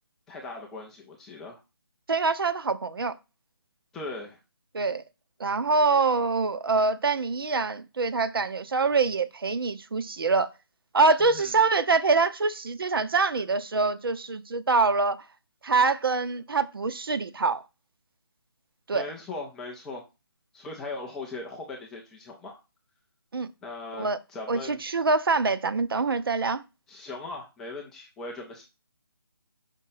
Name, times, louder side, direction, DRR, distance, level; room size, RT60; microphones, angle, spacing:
voice 1, 0.3-1.6 3.9-4.4 11.2-11.5 18.9-20.0 20.5-22.6 23.6-24.8 26.9-28.6, left 3 dB, 5° left, 0.3 m, -39 dB
voice 2, 2.1-3.2 4.7-5.0 5.4-10.5 10.9-15.2 15.6-17.6 18.9-19.1 23.3-23.5 24.0-24.2 24.5-26.6, right 4 dB, 65° right, 0.7 m, -25 dB
5.4 x 3.6 x 5.6 m
figure-of-eight pair, 155°, 13 cm